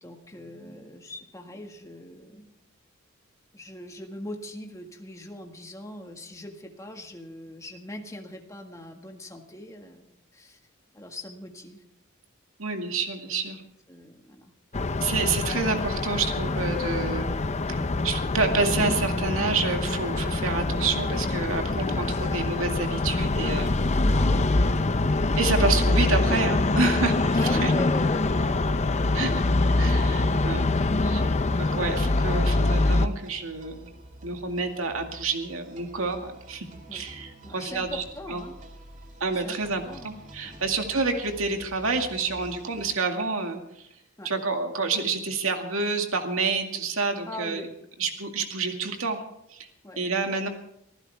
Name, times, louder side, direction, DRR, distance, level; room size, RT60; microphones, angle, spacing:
voice 1, 0.0-2.6 3.5-10.1 10.3-10.6 10.9-11.8 13.9-14.5 24.1-24.5 27.4-29.5 35.1-35.2 36.9-37.1 37.4-38.6 39.3-40.7 44.2-44.3 47.3-47.7 49.8-50.5, left 1 dB, 15° left, 3 dB, 1.7 m, -41 dB
voice 2, 12.6-13.6 15.0-17.4 18.0-23.8 25.4-27.7 29.1-29.4 29.8-30.6 31.0-31.3 31.6-33.9 34.2-38.4 39.2-43.9 44.2-47.7 48.0-49.2 49.5-49.7 50.0-50.5, right 4 dB, 85° right, 4 dB, 2.2 m, -28 dB
sound 1, 14.7-33.1, left 2 dB, 35° left, 0.7 m, -24 dB
sound 2, 29.2-42.9, right 1 dB, 40° right, 2.3 m, -48 dB
25.0 x 15.5 x 3.5 m, 0.79 s
head